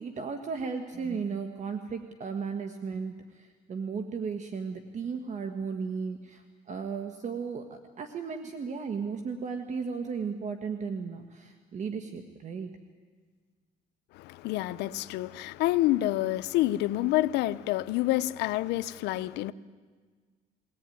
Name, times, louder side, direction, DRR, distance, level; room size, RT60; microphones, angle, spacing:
voice 1, 0.0-12.7, right 5 dB, 45° right, 1.5 m, -35 dB
voice 2, 14.1-19.5, left 16 dB, 90° left, 0.7 m, -28 dB
22.5 x 18.0 x 9.4 m
cardioid pair, 110°, 17 cm